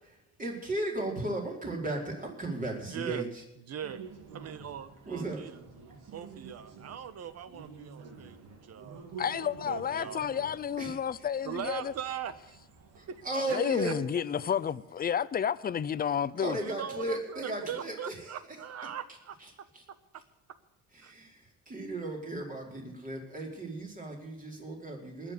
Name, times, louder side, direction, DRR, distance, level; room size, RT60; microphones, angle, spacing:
voice 1, 0.0-3.4 5.1-5.4 10.8-11.0 12.9-14.0 16.4-18.6 19.4-19.8 20.9-25.3, right 1 dB, 25° right, 4.9 m, -36 dB
voice 2, 2.9-3.3 3.7-4.0 4.3-5.5 6.1-9.0 9.4-10.3 11.4-12.6 13.1-13.2 13.5-13.9 16.6-19.4 20.1-20.2 21.0-21.1, right 9 dB, 55° right, 1.3 m, -40 dB
sound 1, 3.8-13.3, right 5 dB, 85° right, 3.4 m, -49 dB
voice 3, 9.2-11.9 13.5-16.6, left 8 dB, 30° left, 0.6 m, -31 dB
21.0 x 7.1 x 6.7 m
cardioid pair, 125°, 31 cm